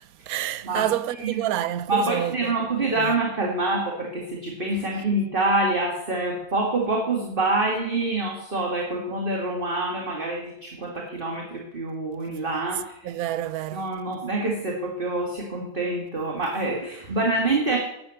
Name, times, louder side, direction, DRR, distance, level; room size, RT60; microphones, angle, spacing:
voice 1, 0.0-2.5 2.9-3.1 13.0-13.8, right 12 dB, 75° right, 1.1 m, -28 dB
voice 2, 1.9-13.1 13.7-17.8, right 2 dB, 35° right, 2.0 m, -26 dB
12.0 x 8.5 x 7.8 m
omnidirectional pair, 1.6 m